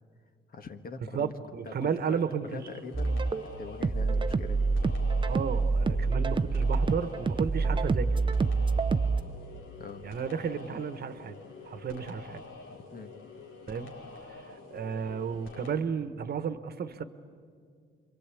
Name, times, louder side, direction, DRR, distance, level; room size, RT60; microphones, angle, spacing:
voice 1, 0.5-1.3 1.6-3.3 3.6-4.7 9.8-10.0 12.7-13.1, left 4 dB, 50° left, 7 dB, 1.7 m, -43 dB
voice 2, 1.1-2.7 5.3-8.1 10.0-11.4 11.6-12.4 13.7-13.9 14.3-17.0, right 6 dB, 50° right, 12 dB, 1.3 m, -33 dB
sound 1, 2.4-15.8, left 4 dB, 80° left, 2.9 m, -47 dB
sound 2, 2.9-9.2, right 4 dB, 25° right, 0.7 m, -27 dB
28.0 x 22.5 x 8.5 m, 2.2 s
cardioid pair, 90°, 20 cm